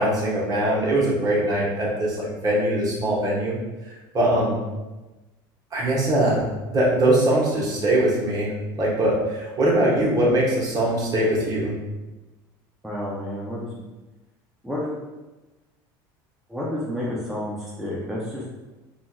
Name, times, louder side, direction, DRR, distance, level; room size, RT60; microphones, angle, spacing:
voice 1, 0.0-3.6 4.1-4.6 5.7-6.4 6.7-11.7, right 1 dB, 35° right, -5 dB, 1.1 m, -22 dB
voice 2, 12.8-13.8 14.6-14.9 16.5-18.4, left 1 dB, 5° right, -6 dB, 0.6 m, -30 dB
3.8 x 2.4 x 2.3 m, 1.1 s
supercardioid pair, 95°, 12 cm